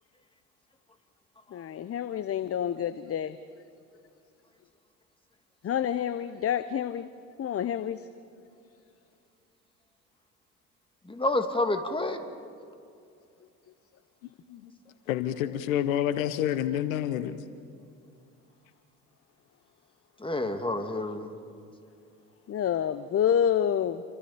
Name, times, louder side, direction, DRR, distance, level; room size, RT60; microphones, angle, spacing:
voice 1, 1.5-3.4 5.6-7.1 7.4-8.1 22.5-24.0, left 9 dB, 35° left, 13 dB, 0.8 m, -28 dB
voice 2, 11.1-12.2 20.2-21.3, left 2 dB, 10° left, 6 dB, 2.4 m, -29 dB
voice 3, 15.1-17.4, left 11 dB, 75° left, 13 dB, 1.0 m, -28 dB
29.5 x 24.5 x 4.3 m, 2.5 s
hypercardioid pair, 60°, 41 cm